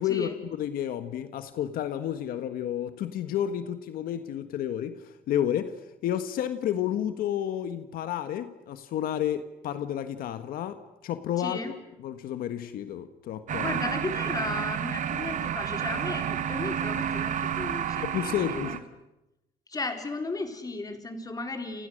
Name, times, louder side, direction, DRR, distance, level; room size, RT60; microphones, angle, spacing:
voice 1, 0.0-5.8 6.0-13.8 18.0-18.8, left 10 dB, 85° left, 10 dB, 1.6 m, -31 dB
voice 2, 11.4-11.8 13.6-18.8 19.7-21.9, left 3 dB, 25° left, 5 dB, 4.3 m, -35 dB
sound 1, 13.5-18.8, right 9 dB, 60° right, 1.6 m, -30 dB
30.0 x 29.5 x 6.6 m, 0.92 s
cardioid pair, 115°, 15 cm